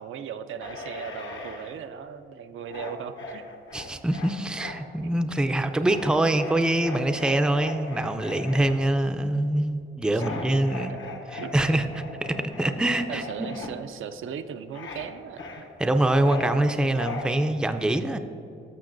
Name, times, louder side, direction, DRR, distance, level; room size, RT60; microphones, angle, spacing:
voice 1, 0.0-3.5 5.4-5.7 10.1-10.2 10.9-11.0 11.4-11.5 13.1-15.4 16.7-17.0, right 8 dB, 80° right, 9 dB, 0.4 m, -38 dB
sound 1, 0.6-1.8 2.7-4.8 5.8-8.7 10.2-13.7 14.7-15.1 15.4-16.5 17.0-17.3, left 4 dB, 70° left, 1.1 m, -39 dB
voice 2, 3.7-10.9 11.3-13.5 15.8-18.2, right 1 dB, 5° right, 8 dB, 0.4 m, -24 dB
13.5 x 6.2 x 2.6 m, 2.8 s
cardioid pair, 105°, 20 cm